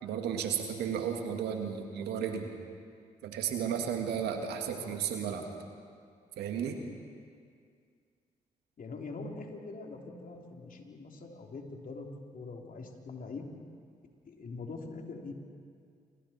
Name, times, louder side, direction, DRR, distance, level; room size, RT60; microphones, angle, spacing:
voice 1, 0.0-2.5 3.2-5.5 6.4-6.8, right 8 dB, 80° right, 4 dB, 2.2 m, -33 dB
voice 2, 8.8-12.1 12.3-13.5 14.2-15.3, left 3 dB, 55° left, 1 dB, 3.4 m, -43 dB
28.0 x 24.5 x 4.4 m, 2.2 s
hypercardioid pair, 45°, 17 cm